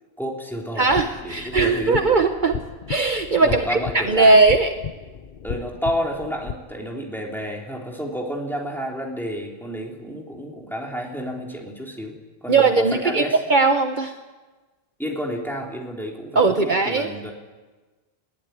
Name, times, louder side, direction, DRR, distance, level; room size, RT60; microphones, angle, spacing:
voice 1, 0.2-0.9 1.2-2.0 3.4-4.4 5.4-12.2 12.4-13.4 15.0-17.3, equal, ahead, -1 dB, 3.5 m, -30 dB
voice 2, 0.8-2.6 2.9-4.7 12.5-13.2 13.5-14.1 16.3-17.1, right 3 dB, 50° right, 6 dB, 1.2 m, -19 dB
sound 1, 0.9-6.5, left 7 dB, 55° left, 0.9 m, -34 dB
21.0 x 15.0 x 9.5 m, 1.3 s
omnidirectional pair, 1.1 m